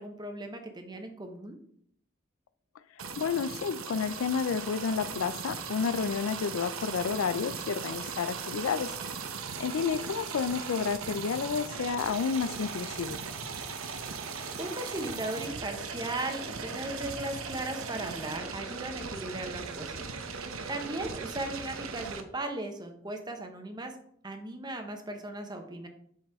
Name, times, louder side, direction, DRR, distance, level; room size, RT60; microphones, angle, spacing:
voice 1, 0.0-1.6 14.6-20.1 20.7-23.9 24.2-25.9, right 1 dB, 20° right, 5 dB, 0.9 m, -37 dB
sound 1, 3.0-22.2, right 5 dB, 80° right, 0.9 m, -38 dB
voice 2, 3.2-8.9 9.6-13.2, left 6 dB, 75° left, 14 dB, 0.4 m, -30 dB
7.5 x 6.1 x 3.5 m, 0.65 s
head